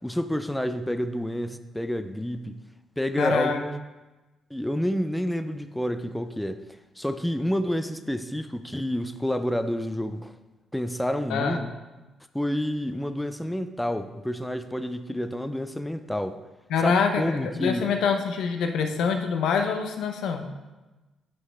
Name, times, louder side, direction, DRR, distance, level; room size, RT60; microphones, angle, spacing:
voice 1, 0.0-2.6 3.0-3.8 4.5-6.6 7.0-10.3 10.7-11.6 12.3-16.4 16.8-17.9, equal, 5° left, 9 dB, 0.4 m, -29 dB
voice 2, 3.2-3.6 11.3-11.7 16.7-20.5, left 6 dB, 85° left, 5 dB, 0.7 m, -25 dB
9.6 x 5.5 x 3.3 m, 1.1 s
cardioid pair, 120°, 0 cm